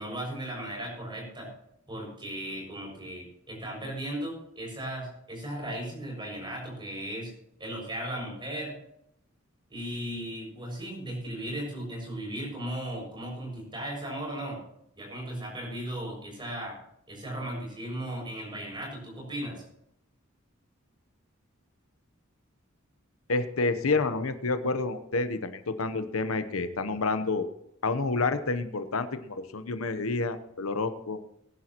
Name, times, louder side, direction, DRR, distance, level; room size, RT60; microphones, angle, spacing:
voice 1, 0.0-1.5 1.9-7.3 7.6-8.8 9.7-14.6 14.9-16.7 17.1-19.6, right 1 dB, 25° right, -2 dB, 6.6 m, -36 dB
voice 2, 23.3-27.5 27.8-31.2, left 3 dB, 90° left, 10 dB, 0.9 m, -29 dB
21.5 x 10.5 x 3.0 m, 0.77 s
head